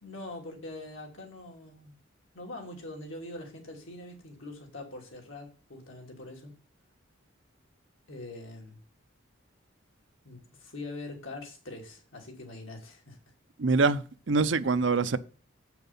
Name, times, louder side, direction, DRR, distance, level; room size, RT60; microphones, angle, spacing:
voice 1, 0.0-2.0 2.3-6.6 8.1-8.8 10.2-13.2, left 2 dB, 85° left, 2.9 m, -43 dB
voice 2, 13.6-15.2, right 4 dB, 65° right, 0.6 m, -25 dB
8.2 x 6.0 x 5.5 m
head